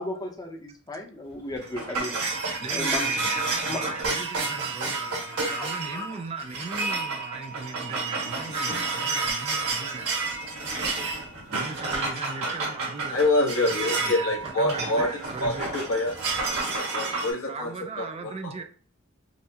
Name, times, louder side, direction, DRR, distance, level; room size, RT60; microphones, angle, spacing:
voice 1, 0.0-2.1 2.7-3.1 3.7-4.1 5.5-5.6 5.9-6.0, left 1 dB, 20° left, 0.6 m, -34 dB
sound 1, 1.3-17.3, right 3 dB, 80° right, 1.5 m, -30 dB
voice 2, 2.6-10.1 11.5-13.2 13.6-15.7 17.5-18.6, right 4 dB, 30° right, 0.4 m, -38 dB
voice 3, 13.1-15.1 15.4-16.1 16.7-17.7 18.0-18.5, left 2 dB, 70° left, 1.0 m, -26 dB
5.5 x 2.0 x 2.8 m
head